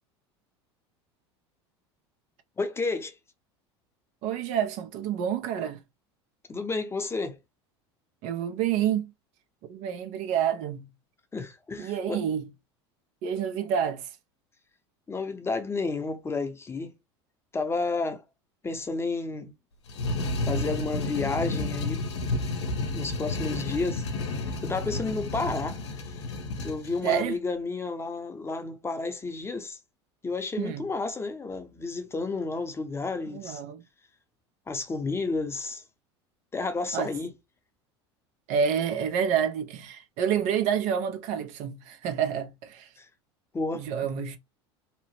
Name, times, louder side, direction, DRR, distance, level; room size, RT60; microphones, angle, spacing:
voice 1, 2.6-3.2 6.5-7.4 11.3-12.2 15.1-16.9 17.5-18.2 18.6-19.5 20.4-22.0 22.9-25.8 26.6-29.8 30.2-33.6 34.7-35.8 36.5-37.3 43.0-43.1 43.5-43.9, left 3 dB, 15° left, 0.6 m, -31 dB
voice 2, 4.2-5.8 8.2-9.1 9.7-10.9 11.8-12.5 13.2-14.1 27.0-27.4 30.6-30.9 33.3-33.8 36.9-37.1 38.5-42.9 43.7-44.4, right 8 dB, 55° right, 0.6 m, -28 dB
Tomb door, 19.9-27.3, left 2 dB, 80° left, 0.7 m, -31 dB
2.8 x 2.0 x 2.8 m
hypercardioid pair, 85°, 14 cm